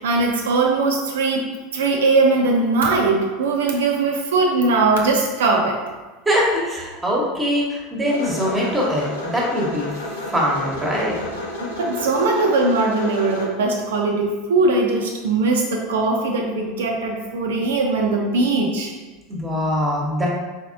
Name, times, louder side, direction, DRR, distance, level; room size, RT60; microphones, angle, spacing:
voice 1, 0.0-5.8 11.8-18.9, right 3 dB, 65° right, 1 dB, 0.7 m, -20 dB
voice 2, 6.2-9.9 10.1-11.3 19.3-20.3, equal, 15° right, -3 dB, 1.2 m, -22 dB
sound 1, 8.1-13.5, left 1 dB, 70° left, 0.8 m, -31 dB
4.5 x 3.5 x 2.6 m, 1.2 s
figure-of-eight pair, 80°, 0 cm